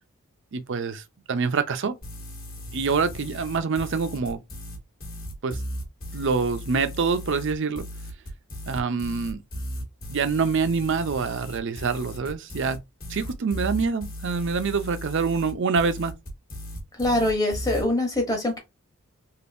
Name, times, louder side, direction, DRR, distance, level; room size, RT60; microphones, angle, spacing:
voice 1, 0.5-2.0 2.7-4.4 5.4-5.6 6.1-7.9 8.7-9.4 10.1-12.8 13.1-16.1, right 5 dB, 55° right, 0.5 m, -26 dB
sound 1, 2.0-17.8, equal, 40° left, 1.3 m, -37 dB
voice 2, 16.9-18.6, left 1 dB, 15° left, 1.1 m, -24 dB
3.5 x 2.6 x 2.5 m
head